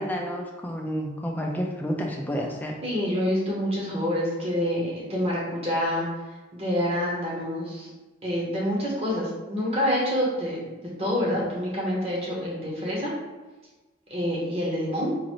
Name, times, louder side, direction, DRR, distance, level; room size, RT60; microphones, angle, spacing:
voice 1, 0.0-2.8, equal, 10° left, 0 dB, 0.4 m, -30 dB
voice 2, 2.8-6.1 6.5-7.9 8.2-10.7 11.0-13.1 14.1-15.1, equal, 35° right, -5 dB, 1.0 m, -27 dB
3.9 x 2.6 x 3.1 m, 1.2 s
head